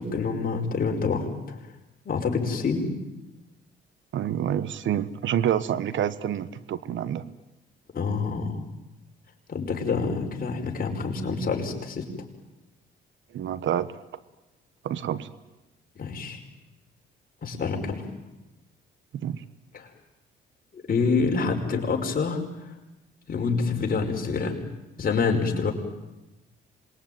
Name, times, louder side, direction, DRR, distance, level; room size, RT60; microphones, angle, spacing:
voice 1, 0.0-1.6 2.1-2.9 7.9-8.6 9.5-12.1 16.0-16.4 17.4-18.0 19.7-19.9 20.7-22.4 23.3-24.6 25.0-25.7, left 4 dB, 45° left, 2 dB, 5.4 m, -27 dB
voice 2, 4.1-7.2 13.3-14.0 14.8-15.3 19.1-19.4, right 10 dB, 70° right, 15 dB, 1.2 m, -28 dB
26.5 x 22.0 x 9.4 m, 1.0 s
cardioid pair, 90°, 20 cm